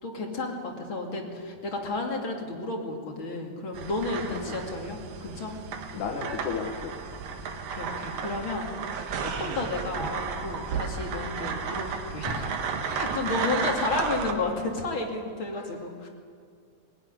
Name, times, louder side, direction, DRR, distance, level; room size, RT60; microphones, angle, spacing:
voice 1, 0.0-5.5 7.7-16.1, left 2 dB, 40° left, 1 dB, 3.0 m, -32 dB
sound 1, 3.7-14.3, right 5 dB, 80° right, 3.3 m, -33 dB
voice 2, 5.9-7.0 13.4-13.5 15.5-15.8, left 6 dB, 65° left, 2 dB, 2.9 m, -34 dB
23.5 x 16.0 x 9.8 m, 2.2 s
omnidirectional pair, 3.8 m